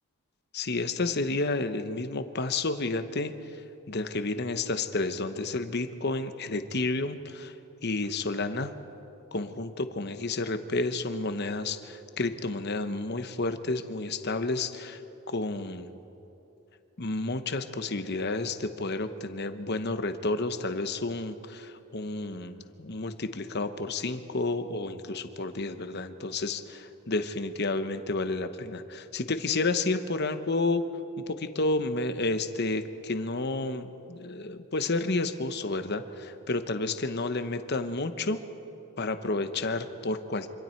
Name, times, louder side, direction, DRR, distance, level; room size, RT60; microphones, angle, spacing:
voice 1, 0.5-3.3 3.9-7.5 7.8-8.7 9.3-15.0 15.3-15.9 17.0-30.8 31.2-38.4 39.0-40.5, left 2 dB, 50° left, 9 dB, 1.0 m, -31 dB
26.0 x 25.5 x 4.5 m, 2.9 s
head